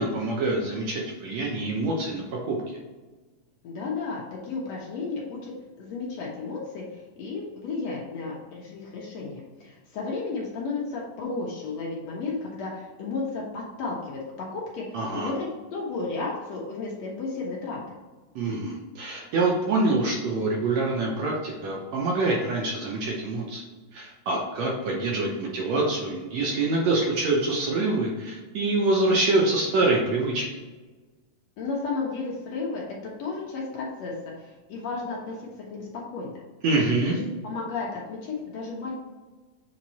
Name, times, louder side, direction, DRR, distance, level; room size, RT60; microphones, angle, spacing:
voice 1, 0.0-2.6 14.9-15.3 18.4-23.6 23.9-30.6 36.6-37.2, right 2 dB, 65° right, -2 dB, 1.9 m, -25 dB
voice 2, 3.6-5.5 5.8-17.8 31.6-36.4 37.0-37.2 37.4-38.9, left 4 dB, 65° left, -3 dB, 1.9 m, -33 dB
7.6 x 3.6 x 4.1 m, 1.3 s
omnidirectional pair, 3.9 m